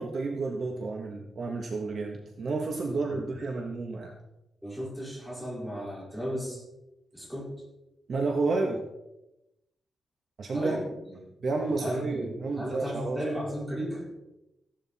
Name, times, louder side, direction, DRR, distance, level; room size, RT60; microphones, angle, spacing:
voice 1, 0.0-4.1 8.1-8.8 10.4-10.8 11.4-13.2, right 3 dB, 45° right, 1 dB, 1.4 m, -31 dB
voice 2, 2.9-3.3 4.6-6.6 7.1-7.5 10.5-11.2 11.7-14.1, equal, 5° right, -5 dB, 4.7 m, -35 dB
15.5 x 11.5 x 4.2 m, 0.92 s
wide cardioid pair, 175°, 0 cm